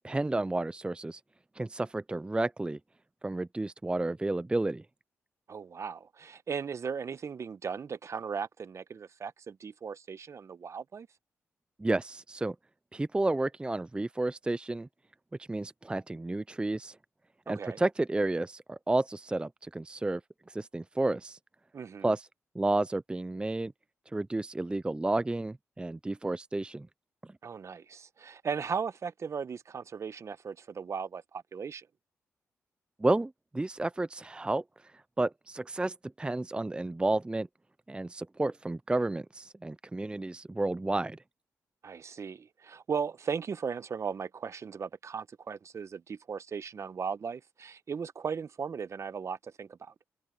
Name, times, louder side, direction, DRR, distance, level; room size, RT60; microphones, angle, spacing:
voice 1, 0.0-1.2 1.6-2.8 3.2-4.8 11.8-12.6 12.9-14.9 15.5-17.0 17.5-20.2 20.5-21.4 22.0-22.3 22.5-23.7 24.1-26.9 33.0-34.6 35.2-37.5 37.9-41.2, right 2 dB, 15° right, 0.5 m, -31 dB
voice 2, 5.5-11.1 17.5-17.8 21.7-22.1 27.4-31.9 41.8-49.9, right 6 dB, 55° right, 1.1 m, -37 dB
supercardioid pair, 50°, 6 cm